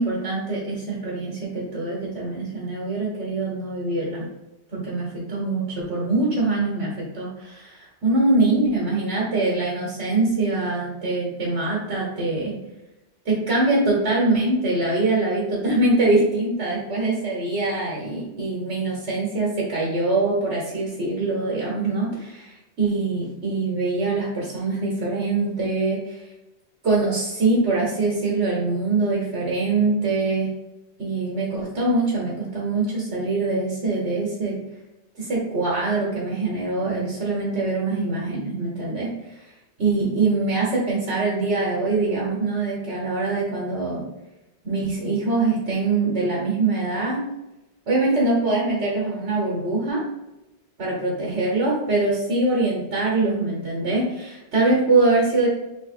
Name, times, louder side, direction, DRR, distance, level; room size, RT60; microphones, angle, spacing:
voice 1, 0.0-4.3 4.7-12.5 13.2-26.2 26.8-30.5 31.0-34.6 35.2-39.1 39.8-44.0 44.6-47.2 47.9-50.0 50.8-55.5, right 3 dB, 85° right, -5 dB, 1.5 m, -23 dB
3.5 x 3.1 x 4.2 m, 0.99 s
omnidirectional pair, 1.1 m